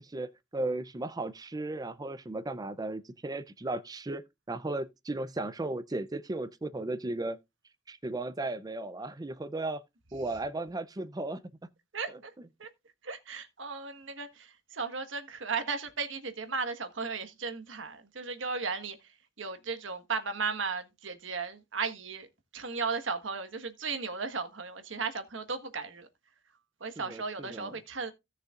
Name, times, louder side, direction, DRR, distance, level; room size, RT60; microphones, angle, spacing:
voice 1, 0.0-7.4 7.9-9.8 10.1-11.4 27.0-27.7, right 2 dB, 20° right, 0.5 m, -35 dB
voice 2, 11.9-12.3 12.6-12.7 13.0-22.3 22.5-26.1 26.8-28.1, right 4 dB, 85° right, 1.4 m, -35 dB
16.5 x 6.5 x 2.4 m
head